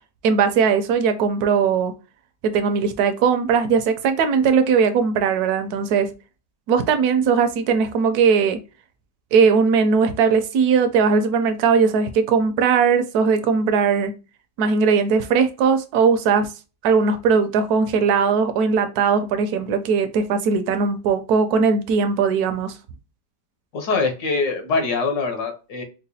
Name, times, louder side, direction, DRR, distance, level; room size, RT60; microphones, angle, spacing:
voice 1, 0.2-1.9 2.4-6.1 6.7-8.6 9.3-14.1 14.6-16.5 16.8-22.8, right 5 dB, 70° right, 0.9 m, -19 dB
voice 2, 23.7-25.8, left 4 dB, 65° left, 1.4 m, -23 dB
4.8 x 2.1 x 2.7 m
omnidirectional pair, 2.0 m